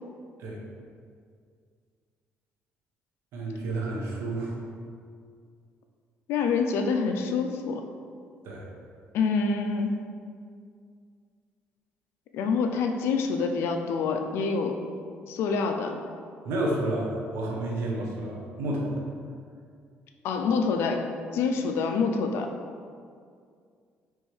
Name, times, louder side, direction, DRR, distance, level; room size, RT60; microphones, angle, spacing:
voice 1, 3.3-4.6 8.4-8.7 16.4-19.0, right 1 dB, 75° right, -2 dB, 0.8 m, -30 dB
voice 2, 6.3-7.8 9.1-9.9 12.3-14.8 15.3-16.0 20.2-21.1 21.3-22.5, left 5 dB, 75° left, 5 dB, 0.4 m, -26 dB
4.4 x 3.1 x 3.2 m, 2.2 s
cardioid pair, 115°, 4 cm